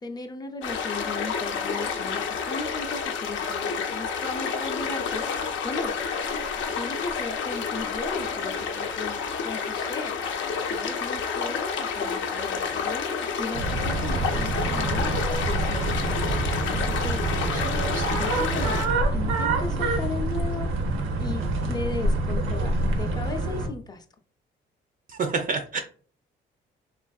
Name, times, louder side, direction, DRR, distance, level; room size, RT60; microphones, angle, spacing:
voice 1, 0.0-5.9 6.7-10.1 10.7-15.2 15.4-20.7 21.2-24.1, left 3 dB, 20° left, 5 dB, 0.5 m, -37 dB
sound 1, 0.6-18.9, left 6 dB, 75° left, 0.6 m, -29 dB
sound 2, 13.5-23.7, right 2 dB, 85° right, 0.6 m, -26 dB
voice 2, 17.4-18.1 25.1-25.8, right 4 dB, 45° right, 5 dB, 0.4 m, -30 dB
3.3 x 2.5 x 2.3 m, 0.42 s
cardioid pair, 90°, 20 cm